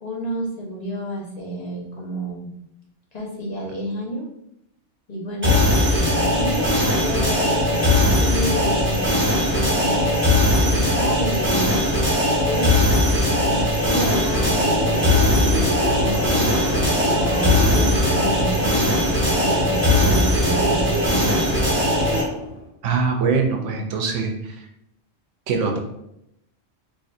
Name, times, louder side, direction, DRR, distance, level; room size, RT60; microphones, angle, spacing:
voice 1, 0.0-2.5 3.1-4.3 5.1-12.0 12.4-16.5 17.1-21.4, equal, 35° left, -4 dB, 0.9 m, -30 dB
sound 1, 5.4-22.2, left 1 dB, 10° right, 0.6 m, -19 dB
sound 2, 13.4-22.7, equal, 60° left, 1.3 m, -30 dB
voice 2, 22.8-24.6 25.5-25.8, right 5 dB, 75° right, 3 dB, 0.9 m, -22 dB
4.2 x 2.6 x 2.6 m, 0.80 s
omnidirectional pair, 1.3 m